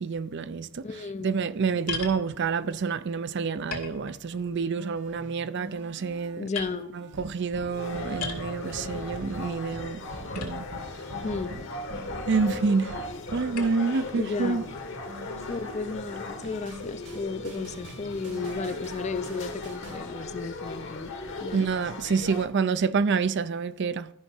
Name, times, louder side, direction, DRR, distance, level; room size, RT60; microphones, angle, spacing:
voice 1, 0.0-0.9 1.2-6.5 6.9-10.0 10.4-10.6 12.3-13.0 13.3-14.6 21.5-24.1, right 5 dB, 50° right, 0.4 m, -28 dB
voice 2, 0.8-1.3 6.4-7.0 11.2-11.6 14.1-14.7 15.4-21.1 21.4-21.7, left 4 dB, 30° left, 0.5 m, -34 dB
sound 1, 1.9-2.2 3.1-3.2 3.7-4.5 4.9-5.3 5.9-6.2 6.5-6.7 8.2-8.5 10.3-10.9 11.6-11.7 13.6-13.8, left 4 dB, 80° left, 2.3 m, -36 dB
sound 2, 4.8-20.0, right 1 dB, 80° right, 2.2 m, -44 dB
sound 3, 7.7-22.5, left 2 dB, 55° left, 1.3 m, -38 dB
12.5 x 5.6 x 4.4 m
head